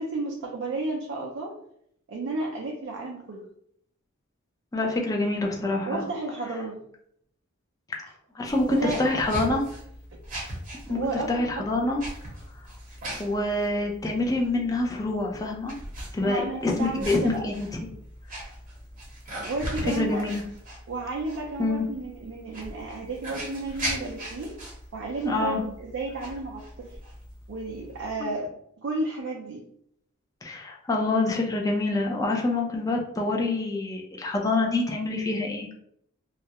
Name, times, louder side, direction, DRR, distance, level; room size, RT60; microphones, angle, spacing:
voice 1, 0.0-1.5 2.1-3.5 5.9-6.9 8.7-9.0 10.9-11.6 16.2-17.5 19.4-20.3 20.9-24.5 24.9-26.9 27.5-28.5 28.8-29.6, right 2 dB, 60° right, -1 dB, 0.4 m, -32 dB
voice 2, 4.7-6.0 7.9-8.1 8.3-9.6 10.9-12.0 13.2-15.7 16.1-17.7 19.8-20.4 21.6-21.9 25.2-25.6 30.4-35.7, left 2 dB, 15° left, 0 dB, 0.4 m, -26 dB
sound 1, 8.5-28.1, right 1 dB, 40° right, 0.8 m, -40 dB
2.3 x 2.0 x 2.8 m, 0.70 s
head